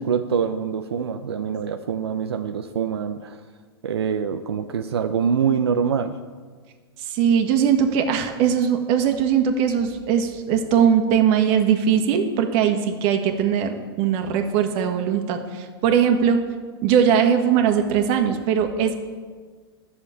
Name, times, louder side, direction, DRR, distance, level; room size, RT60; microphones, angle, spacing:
voice 1, 0.0-3.4 3.8-6.2, right 7 dB, 80° right, 7 dB, 0.6 m, -24 dB
voice 2, 7.1-16.4 16.8-18.9, right 8 dB, 45° right, 5 dB, 1.6 m, -20 dB
11.5 x 7.0 x 8.3 m, 1.5 s
hypercardioid pair, 110°, 13 cm